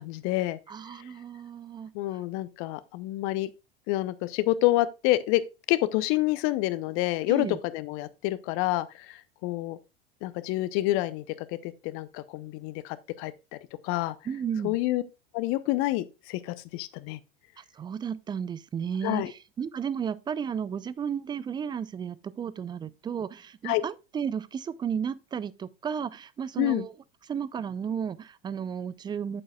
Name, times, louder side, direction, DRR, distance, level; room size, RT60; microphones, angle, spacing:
voice 1, 0.0-0.6 1.9-3.5 3.9-5.4 5.7-9.8 10.2-11.2 11.6-13.6 13.8-14.1 14.6-15.0 15.3-17.2 19.0-19.3 23.6-23.8 26.6-26.9, left 17 dB, 45° left, 0.7 m, -28 dB
voice 2, 0.7-1.9 7.3-7.6 14.3-14.8 17.6-26.9 27.3-29.4, right 7 dB, 15° right, 0.4 m, -33 dB
8.7 x 7.8 x 2.3 m
figure-of-eight pair, 85°, 30 cm